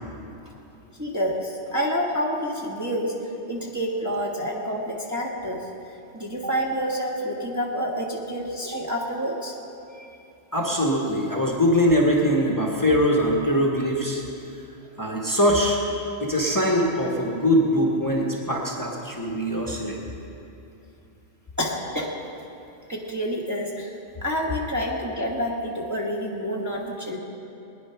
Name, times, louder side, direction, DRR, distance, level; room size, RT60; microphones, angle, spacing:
voice 1, 1.0-3.1 3.5-5.7 6.1-9.6 9.9-10.1 10.8-10.9 21.6-22.1 22.9-23.9 24.2-27.2, equal, 15° right, -3 dB, 1.5 m, -28 dB
voice 2, 10.5-14.2 15.0-15.8 16.2-20.0, equal, 15° left, -2 dB, 1.5 m, -22 dB
20.5 x 10.0 x 5.8 m, 2.8 s
omnidirectional pair, 1.2 m